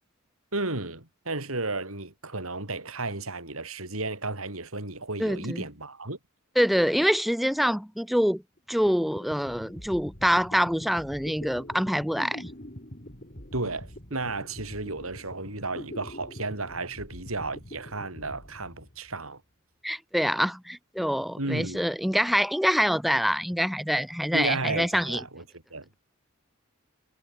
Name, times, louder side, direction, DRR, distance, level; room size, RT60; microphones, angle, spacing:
voice 1, 0.5-6.2 13.5-19.4 21.4-21.9 24.3-25.4 25.7-25.9, right 2 dB, 90° right, 6.5 m, -33 dB
voice 2, 5.2-5.6 6.6-8.4 8.7-12.5 19.8-25.2, equal, ahead, 0.4 m, -25 dB
sound 1, 8.6-8.7 8.9-19.3, left 1 dB, 40° left, 6.0 m, -44 dB
head